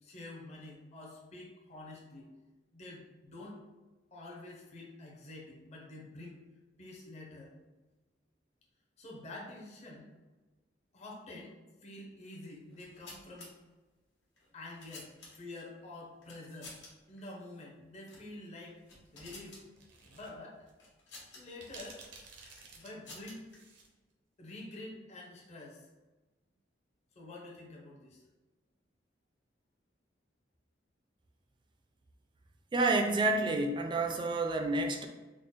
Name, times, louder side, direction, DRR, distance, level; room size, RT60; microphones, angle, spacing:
voice 1, 0.0-2.3 2.7-3.6 4.1-6.4 6.8-7.5 9.0-10.1 10.9-11.5 11.8-13.5 14.5-15.1 15.4-16.7 17.1-18.8 19.1-19.6 20.0-20.6 21.3-22.0 22.7-23.4 24.4-25.9 27.2-28.2, left 2 dB, 40° left, -2 dB, 0.6 m, -48 dB
sound 1, 12.7-13.5 14.4-15.6 16.2-16.9 17.2-17.3 18.0-18.3 18.7-19.6 20.8-21.4 22.4-23.6, left 2 dB, 75° left, 1.2 m, -51 dB
sound 2, 19.8-20.3 20.7-20.8 21.6-23.9, right 4 dB, 90° right, 0.7 m, -52 dB
voice 2, 32.7-35.1, right 2 dB, 25° right, 4 dB, 0.4 m, -29 dB
3.7 x 2.0 x 3.8 m, 1.2 s
head